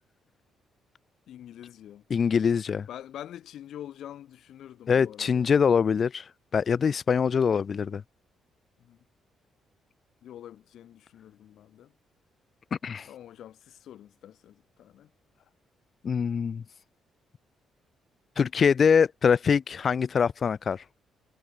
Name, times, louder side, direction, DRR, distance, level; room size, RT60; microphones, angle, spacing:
voice 1, 1.3-2.0 2.9-5.5 8.8-9.0 10.2-11.9 13.1-15.1, left 11 dB, 75° left, 6.4 m, -45 dB
voice 2, 2.1-2.9 4.9-8.0 12.8-13.1 16.0-16.6 18.4-20.8, left 6 dB, 45° left, 1.2 m, -24 dB
cardioid pair, 90°, 0 cm